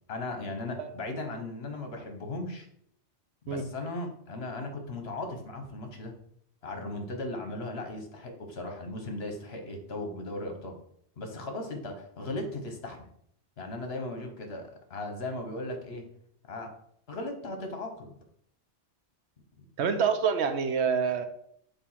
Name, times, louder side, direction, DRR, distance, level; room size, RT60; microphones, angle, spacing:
voice 1, 0.1-2.7 3.4-6.1 6.6-10.7 11.2-13.1 13.6-16.0 16.5-16.7 17.1-18.1, left 2 dB, 60° left, 4 dB, 1.3 m, -37 dB
voice 2, 19.8-21.2, right 6 dB, 70° right, 8 dB, 0.9 m, -26 dB
7.1 x 2.7 x 5.6 m, 0.68 s
omnidirectional pair, 1.2 m